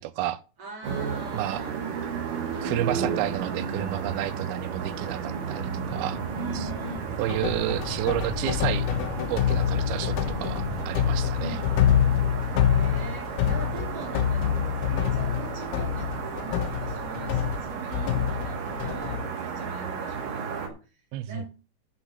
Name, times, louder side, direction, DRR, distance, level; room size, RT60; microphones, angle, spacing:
voice 1, 0.0-0.4 1.3-1.6 2.6-6.2 6.5-6.7 7.2-8.9 9.3-11.6 21.1-21.4, right 14 dB, 90° right, 2.6 m, -31 dB
voice 2, 0.6-1.8 6.3-7.1 11.4-12.1 12.6-14.6 14.9-20.8 21.3-21.5, right 2 dB, 30° right, 3.3 m, -42 dB
sound 1, 0.8-20.7, right 6 dB, 70° right, 3.2 m, -33 dB
sound 2, 5.9-11.9, equal, ahead, 2.4 m, -40 dB
sound 3, 7.3-19.3, left 9 dB, 80° left, 3.0 m, -26 dB
7.9 x 6.2 x 7.9 m
omnidirectional pair, 4.3 m